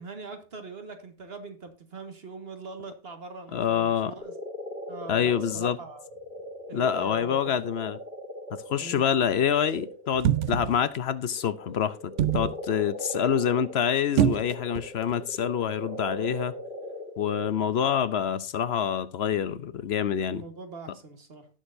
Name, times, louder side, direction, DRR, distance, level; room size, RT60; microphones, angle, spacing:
voice 1, 0.0-4.3 4.9-6.1 6.7-7.5 8.8-9.1 20.3-21.5, right 3 dB, 55° right, 1.8 m, -42 dB
voice 2, 3.5-4.1 5.1-5.8 6.7-8.0 8.5-16.6 17.2-20.4, left 8 dB, 65° left, 0.9 m, -26 dB
sound 1, 4.2-10.9 11.3-17.6, left 1 dB, 5° right, 2.0 m, -39 dB
sound 2, 10.1-10.8 12.2-12.6 14.2-14.8 15.1-15.2, right 10 dB, 85° right, 1.0 m, -24 dB
18.0 x 6.6 x 2.6 m
omnidirectional pair, 1.2 m